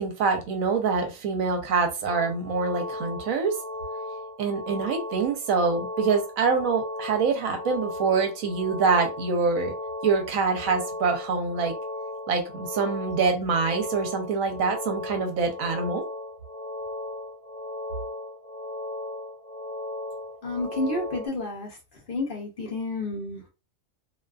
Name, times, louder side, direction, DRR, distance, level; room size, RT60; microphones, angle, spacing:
voice 1, 0.0-3.6 4.4-9.7 10.0-11.7 12.3-16.0, right 5 dB, 75° right, 4 dB, 1.0 m, -25 dB
sound 1, 2.1-21.3, left 1 dB, 35° right, 0.6 m, -36 dB
voice 2, 20.4-23.5, left 2 dB, 50° left, -1 dB, 0.7 m, -31 dB
2.6 x 2.4 x 2.3 m, 0.29 s
omnidirectional pair, 1.5 m